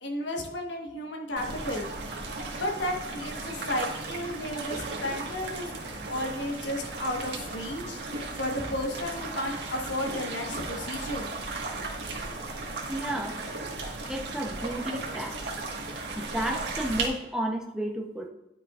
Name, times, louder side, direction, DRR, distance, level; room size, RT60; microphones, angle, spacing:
voice 1, 0.0-1.9 2.5-5.7 6.1-8.0 8.4-11.3, left 1 dB, 85° left, 2 dB, 1.3 m, -33 dB
sound 1, 1.4-17.1, right 3 dB, 70° right, 1.6 m, -36 dB
voice 2, 12.9-13.4 14.1-15.4 16.2-18.3, right 1 dB, 5° right, 0 dB, 0.7 m, -32 dB
10.0 x 5.6 x 2.4 m, 0.93 s
head